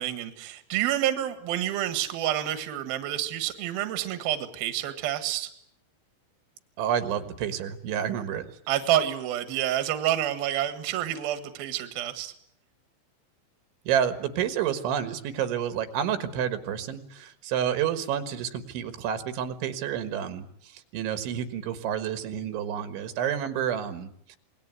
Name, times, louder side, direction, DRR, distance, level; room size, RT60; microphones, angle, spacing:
voice 1, 0.0-5.5 8.7-12.3, right 12 dB, 60° right, 10 dB, 3.2 m, -28 dB
voice 2, 6.8-8.5 13.9-24.4, right 9 dB, 80° right, 10 dB, 3.9 m, -29 dB
27.0 x 20.0 x 9.6 m, 0.68 s
omnidirectional pair, 5.5 m